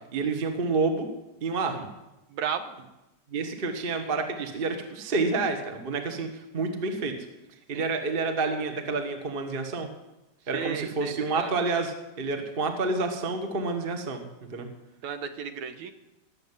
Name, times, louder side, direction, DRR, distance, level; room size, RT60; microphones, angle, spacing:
voice 1, 0.1-1.1 1.4-1.9 3.3-7.1 7.7-9.9 10.5-14.2 14.5-14.7, right 3 dB, 35° right, 5 dB, 0.9 m, -29 dB
voice 2, 2.3-2.8 7.7-7.9 10.5-11.5 15.0-15.9, right 7 dB, 70° right, 9 dB, 2.2 m, -34 dB
19.0 x 7.8 x 9.7 m, 0.98 s
omnidirectional pair, 3.8 m